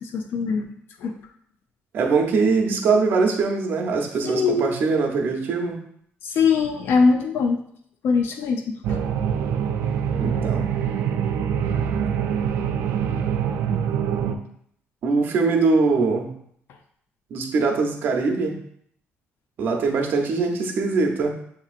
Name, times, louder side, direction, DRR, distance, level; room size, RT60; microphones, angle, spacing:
voice 1, 0.0-0.7 1.0-1.1 4.2-4.7 6.2-7.6 8.0-8.6, left 5 dB, 60° left, 5 dB, 0.4 m, -21 dB
voice 2, 1.9-5.8 10.1-10.7 15.0-16.3 17.3-18.6 19.6-21.3, right 4 dB, 50° right, 2 dB, 0.7 m, -22 dB
sound 1, 8.8-14.3, right 8 dB, 85° right, 0.4 m, -24 dB
6.8 x 2.9 x 2.4 m, 0.67 s
cardioid pair, 165°, 4 cm